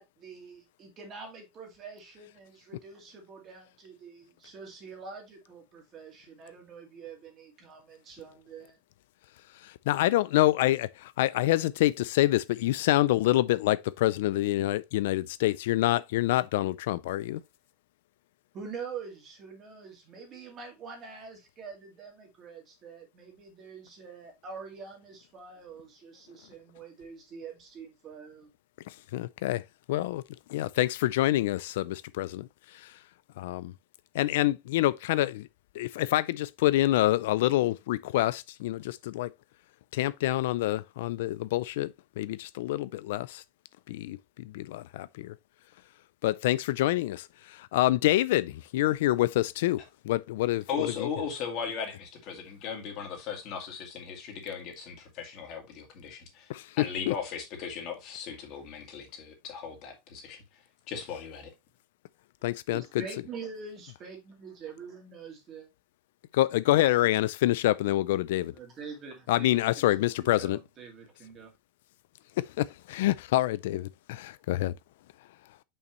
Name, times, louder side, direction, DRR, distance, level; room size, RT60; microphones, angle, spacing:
voice 1, 0.0-8.8 18.5-28.5 62.7-65.7 68.5-71.5, right 5 dB, 25° right, 2.1 m, -45 dB
voice 2, 9.5-17.4 28.9-29.6 29.9-30.2 30.5-33.0 33.4-33.7 34.1-35.5 35.7-39.3 39.9-43.4 43.9-45.4 46.2-51.1 56.5-57.1 62.4-62.8 66.3-68.5 69.3-70.6 72.4-74.7, left 15 dB, 80° left, 0.3 m, -27 dB
voice 3, 50.7-56.5 56.8-60.4 60.9-61.5, left 6 dB, 40° left, 2.2 m, -37 dB
6.8 x 5.6 x 3.0 m
supercardioid pair, 180°, 0 cm